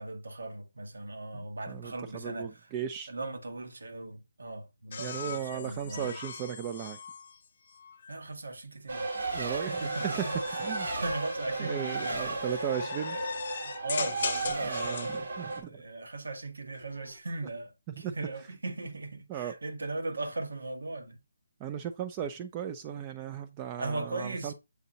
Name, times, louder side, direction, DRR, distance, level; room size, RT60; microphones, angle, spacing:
voice 1, 0.0-2.7 3.1-6.2 8.1-9.1 9.7-21.2 23.8-24.5, right 2 dB, 80° right, 1.2 m, -39 dB
voice 2, 1.3-3.1 5.0-7.0 9.2-10.2 10.6-10.9 11.6-13.2 14.6-15.8 18.0-18.2 19.3-19.5 21.6-24.5, right 9 dB, 20° right, 0.3 m, -36 dB
sound 1, 4.9-8.2 9.0-15.2 16.7-17.2, left 6 dB, 45° left, 0.6 m, -40 dB
Race car auto racing, 8.9-15.6, right 3 dB, 65° right, 1.1 m, -34 dB
6.8 x 2.8 x 2.7 m
hypercardioid pair, 165°, 0 cm